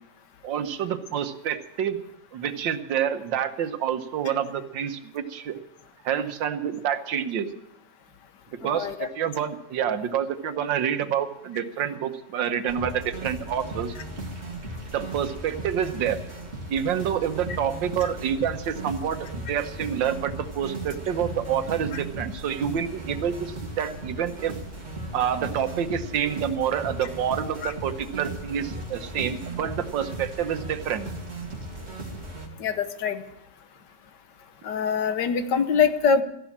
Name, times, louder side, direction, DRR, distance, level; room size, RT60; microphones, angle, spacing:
voice 1, 0.4-2.0 2.3-5.6 6.0-7.5 8.6-13.9 14.9-16.2 16.7-24.6 25.1-31.1, right 8 dB, 90° right, 10 dB, 1.7 m, -28 dB
voice 2, 8.6-9.1 21.9-22.0 27.6-27.7 32.6-33.2 34.6-36.2, left 6 dB, 70° left, 10 dB, 1.6 m, -24 dB
sound 1, 12.7-32.5, right 1 dB, 35° right, 2.6 m, -37 dB
14.5 x 11.0 x 7.2 m, 0.83 s
omnidirectional pair, 1.9 m